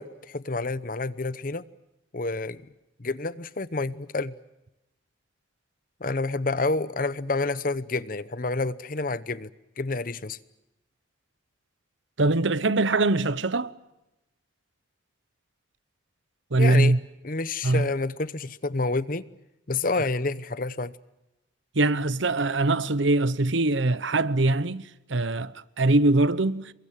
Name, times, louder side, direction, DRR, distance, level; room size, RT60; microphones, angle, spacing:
voice 1, 0.0-1.6 2.1-2.6 3.0-4.3 6.0-9.5 9.8-10.4 16.6-16.9 17.2-19.2 19.7-21.0, left 3 dB, 45° left, 0.9 m, -29 dB
voice 2, 12.2-13.7 16.5-17.0 17.6-17.9 21.7-26.7, right 2 dB, 75° right, 1.0 m, -22 dB
28.0 x 23.5 x 7.5 m
head